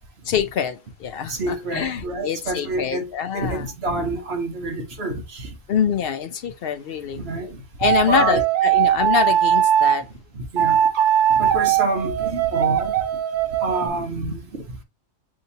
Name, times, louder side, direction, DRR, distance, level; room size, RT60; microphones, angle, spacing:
voice 1, 0.3-3.7 5.7-7.2 7.8-10.0, left 7 dB, 60° left, 0.6 m, -25 dB
voice 2, 1.3-3.1 3.3-5.5 7.1-7.6 8.0-8.4 10.3-10.9 11.3-12.9 13.6-14.6, right 2 dB, 50° right, 1.2 m, -27 dB
sound 1, 7.8-10.0 10.6-13.9, right 10 dB, 75° right, 0.4 m, -20 dB
6.6 x 2.8 x 2.7 m
omnidirectional pair, 1.4 m